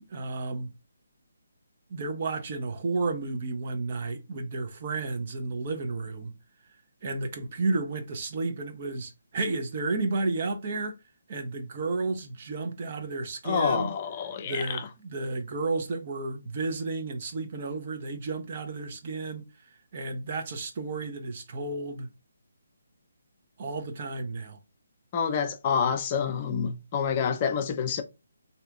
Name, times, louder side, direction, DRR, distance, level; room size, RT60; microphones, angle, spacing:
voice 1, 0.1-0.7 1.9-6.3 7.0-11.0 11.3-13.9 14.4-19.5 19.9-22.1 23.6-24.6, right 3 dB, 40° right, 0.7 m, -32 dB
voice 2, 13.4-14.8 25.1-28.0, left 6 dB, 30° left, 0.5 m, -28 dB
3.3 x 2.8 x 2.4 m
figure-of-eight pair, 145°, 0 cm